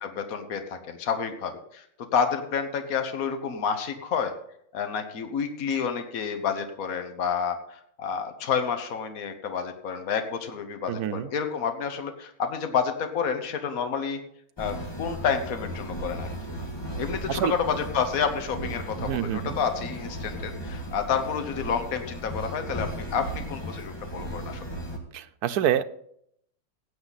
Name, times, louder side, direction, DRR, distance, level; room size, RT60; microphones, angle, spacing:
voice 1, 0.0-1.8 2.1-4.3 4.7-14.2 14.6-16.3 17.0-24.6, left 6 dB, 70° left, 7 dB, 1.6 m, -29 dB
voice 2, 10.9-11.3 17.3-17.5 19.0-19.6 25.1-25.8, right 10 dB, 85° right, 9 dB, 1.2 m, -27 dB
sound 1, 14.6-25.0, right 1 dB, 15° left, 1.7 m, -36 dB
16.5 x 8.7 x 4.1 m, 0.69 s
omnidirectional pair, 1.6 m